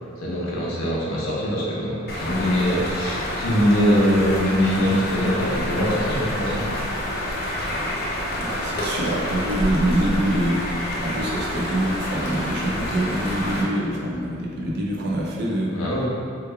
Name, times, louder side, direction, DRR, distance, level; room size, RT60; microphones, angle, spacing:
voice 1, 0.2-6.7 15.7-16.1, equal, 90° left, -5 dB, 0.7 m, -22 dB
sound 1, 2.1-13.6, left 1 dB, 50° left, 0.5 m, -28 dB
voice 2, 8.4-15.7, right 1 dB, 50° right, -3 dB, 0.5 m, -25 dB
3.2 x 2.3 x 3.3 m, 2.4 s
head